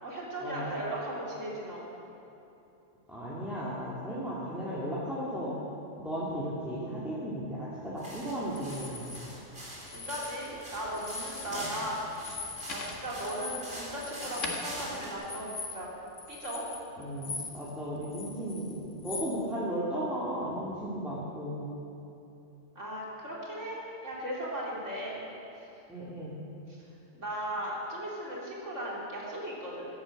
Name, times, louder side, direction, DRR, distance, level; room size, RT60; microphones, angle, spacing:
voice 1, 0.0-1.8 9.8-12.0 12.7-15.9 16.3-16.6 22.8-25.2 27.1-29.9, right 1 dB, 80° right, -5 dB, 3.7 m, -37 dB
voice 2, 3.1-5.5 6.0-9.2 11.5-11.7 17.0-21.7 25.9-26.4, equal, ahead, -9 dB, 2.6 m, -35 dB
sound 1, 8.0-15.1, equal, 50° right, 4.4 m, -44 dB
sound 2, 8.6-9.2 9.8-10.6 10.9-11.6 11.9-17.7 18.0-19.3, left 4 dB, 80° left, 2.1 m, -41 dB
16.0 x 12.0 x 6.7 m, 2.8 s
omnidirectional pair, 1.3 m